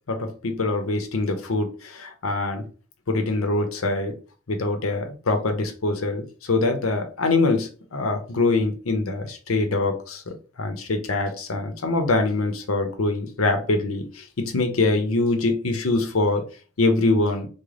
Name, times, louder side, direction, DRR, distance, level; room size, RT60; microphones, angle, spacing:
voice 1, 0.1-2.6 3.1-4.1 4.5-16.4 16.8-17.5, left 2 dB, 85° left, 0.7 m, -24 dB
3.2 x 2.1 x 3.7 m
head